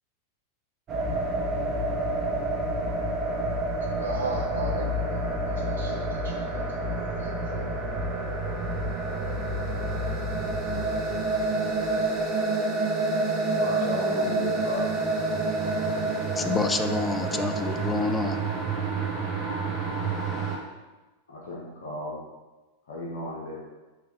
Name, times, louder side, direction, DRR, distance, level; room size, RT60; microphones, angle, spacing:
sound 1, 0.9-20.6, right 2 dB, 30° right, 1.2 m, -28 dB
voice 1, 3.8-8.2, right 3 dB, 70° right, 0 dB, 0.6 m, -38 dB
voice 2, 13.5-14.9 21.3-22.2 22.9-23.7, left 2 dB, 60° left, -3 dB, 1.3 m, -34 dB
voice 3, 16.4-18.4, left 4 dB, 15° left, 8 dB, 0.5 m, -28 dB
5.4 x 3.5 x 5.3 m, 1.2 s
figure-of-eight pair, 90°, 0 cm